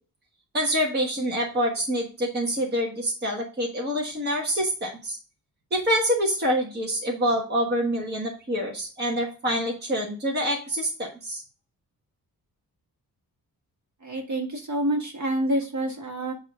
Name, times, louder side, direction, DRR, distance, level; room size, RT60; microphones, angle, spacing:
voice 1, 0.5-5.2 5.7-11.4, equal, 30° right, -1 dB, 1.3 m, -26 dB
voice 2, 14.0-16.3, right 1 dB, 50° right, 2 dB, 1.6 m, -27 dB
8.2 x 3.0 x 4.9 m, 0.36 s
wide cardioid pair, 175°, 36 cm